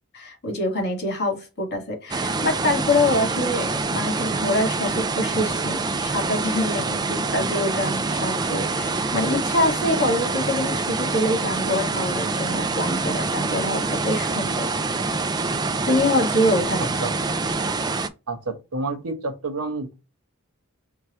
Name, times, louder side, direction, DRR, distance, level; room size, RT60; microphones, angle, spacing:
voice 1, 0.1-14.7 15.9-16.9, left 1 dB, 50° left, 2.0 m, -25 dB
sound 1, 2.1-18.1, right 3 dB, 20° right, 0.3 m, -26 dB
voice 2, 18.3-19.9, right 3 dB, 90° right, 1.0 m, -29 dB
4.6 x 2.3 x 4.3 m
head